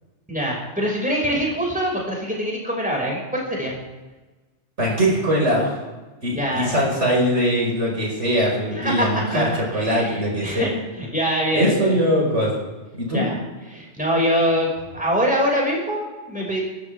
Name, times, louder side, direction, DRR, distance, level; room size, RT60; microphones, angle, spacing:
voice 1, 0.3-3.8 6.3-6.9 8.7-9.1 9.3-11.9 13.1-13.4 13.7-16.6, equal, 5° right, -2 dB, 5.9 m, -24 dB
voice 2, 4.8-5.8 6.2-10.7 11.5-12.5 12.9-13.3, equal, 65° right, -2 dB, 5.6 m, -21 dB
28.0 x 13.5 x 3.6 m, 1.2 s
omnidirectional pair, 1.3 m